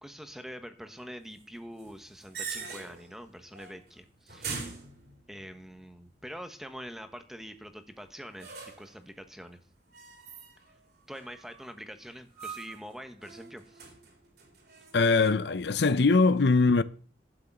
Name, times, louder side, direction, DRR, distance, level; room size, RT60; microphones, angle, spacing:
voice 1, 0.0-4.7 5.3-8.5 8.8-9.6 11.1-13.9, equal, ahead, 1.2 m, -45 dB
sound 1, 1.8-3.2 3.5-3.9 4.3-5.5 8.4-9.0 9.9-10.8 11.1-11.7 12.4-12.9 13.2-15.3, right 5 dB, 55° right, 3.9 m, -42 dB
voice 2, 14.9-16.8, left 3 dB, 70° left, 0.6 m, -22 dB
12.5 x 6.7 x 7.8 m
head